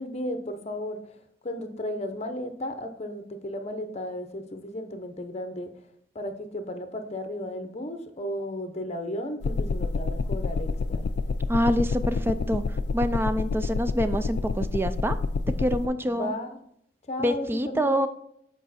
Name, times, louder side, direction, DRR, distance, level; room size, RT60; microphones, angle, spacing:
voice 1, 0.0-5.8 6.1-11.1 16.0-16.6 17.1-18.1, left 1 dB, 35° left, 7 dB, 0.8 m, -34 dB
sound 1, 9.4-15.9, left 4 dB, 65° left, 0.4 m, -28 dB
voice 2, 11.5-12.6 12.9-15.2 15.6-16.3 17.2-18.1, equal, 15° right, 10 dB, 0.4 m, -26 dB
8.1 x 4.7 x 4.2 m, 0.71 s
head